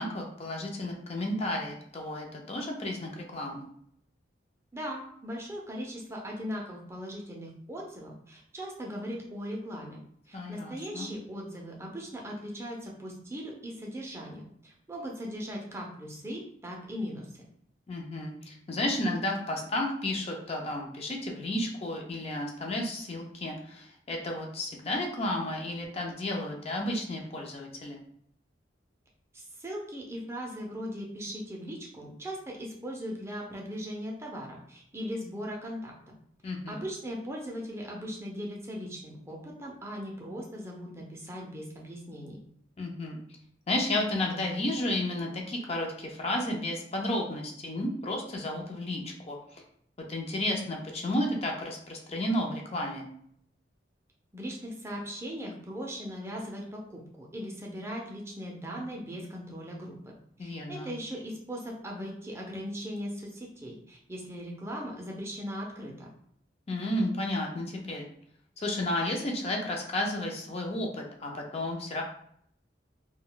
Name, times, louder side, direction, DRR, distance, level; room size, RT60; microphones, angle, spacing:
voice 1, 0.0-3.6 10.3-11.1 17.9-28.0 36.4-36.8 42.8-43.2 43.7-49.6 50.1-53.1 60.4-60.9 66.7-68.1 68.6-72.0, left 1 dB, 35° left, 0 dB, 0.5 m, -32 dB
voice 2, 4.7-10.0 10.3-17.3 29.3-35.9 36.7-42.4 54.3-60.1 60.4-66.1, equal, 15° right, -2 dB, 0.5 m, -39 dB
2.3 x 2.2 x 3.8 m, 0.67 s
head